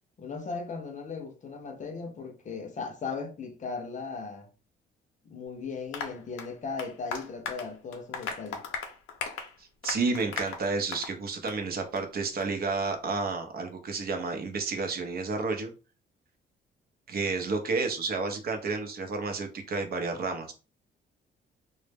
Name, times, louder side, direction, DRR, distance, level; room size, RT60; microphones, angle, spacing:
voice 1, 0.2-4.5 5.3-8.7, left 4 dB, 40° left, 0.5 m, -37 dB
Applause, 5.9-11.2 11.5-11.6 12.0-12.1 12.4-12.5, left 6 dB, 90° left, 0.5 m, -38 dB
voice 2, 9.6-15.7 17.1-20.5, right 4 dB, 50° right, 0.6 m, -31 dB
2.1 x 2.0 x 3.3 m
cardioid pair, 90°, 20 cm